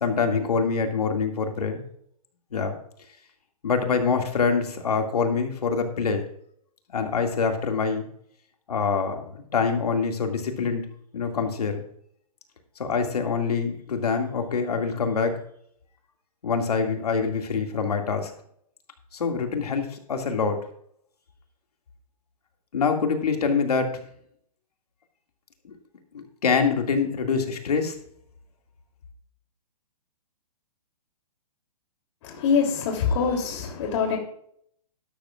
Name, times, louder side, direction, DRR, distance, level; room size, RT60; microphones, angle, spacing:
voice 1, 0.0-1.8 2.5-2.8 3.6-6.3 6.9-8.0 8.7-10.8 11.1-11.8 12.8-15.4 16.4-18.3 19.1-20.6 22.7-24.0 25.6-25.7 26.1-28.0, left 5 dB, 80° left, 4 dB, 2.4 m, -25 dB
voice 2, 32.2-34.2, left 6 dB, 50° left, 1 dB, 3.3 m, -24 dB
13.0 x 12.0 x 2.5 m, 0.67 s
hypercardioid pair, 140°, 20 cm